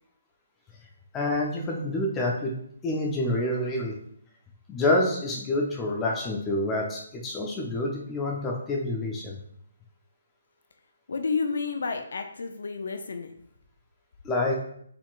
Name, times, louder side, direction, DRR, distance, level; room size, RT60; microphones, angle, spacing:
voice 1, 1.1-2.5 2.8-3.9 4.7-9.4 14.2-14.5, left 1 dB, 15° left, -1 dB, 0.6 m, -27 dB
voice 2, 11.1-13.3, left 4 dB, 70° left, 6 dB, 0.5 m, -30 dB
4.8 x 3.5 x 2.4 m, 0.66 s
figure-of-eight pair, 145°, 0 cm